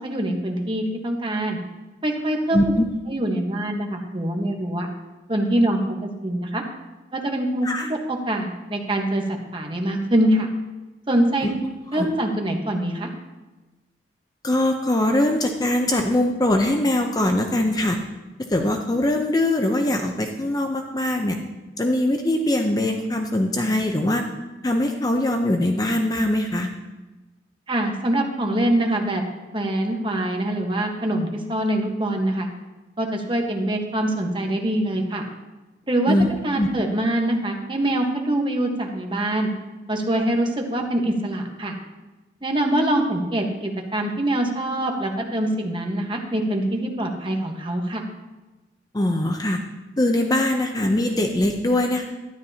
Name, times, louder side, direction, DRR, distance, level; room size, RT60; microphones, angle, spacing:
voice 1, 0.0-1.6 2.0-2.7 3.1-4.9 5.3-6.6 7.1-10.5 11.1-11.5 11.9-13.1 27.7-29.2 29.5-32.5 33.0-35.2 35.9-36.2 36.4-39.5 39.9-41.8 42.4-48.0, right 1 dB, 25° right, 2 dB, 1.2 m, -24 dB
voice 2, 2.5-2.8 7.6-7.9 11.9-12.1 14.4-18.0 18.5-21.4 21.8-24.2 24.6-26.7 36.1-36.3 36.6-36.7 48.9-49.6 50.0-52.0, left 1 dB, 20° left, 3 dB, 0.6 m, -22 dB
12.5 x 10.5 x 2.8 m, 1.1 s
head